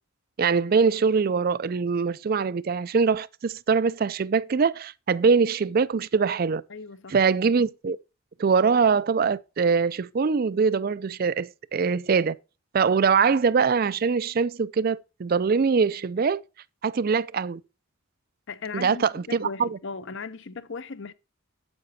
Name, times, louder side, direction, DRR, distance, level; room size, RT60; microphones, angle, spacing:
voice 1, 0.4-6.6 7.1-8.0 8.4-12.4 12.7-16.4 16.8-17.6 18.7-19.8, right 5 dB, 40° right, 0.4 m, -23 dB
voice 2, 6.7-7.1 18.5-21.1, left 4 dB, 55° left, 0.7 m, -37 dB
9.6 x 7.8 x 2.7 m
head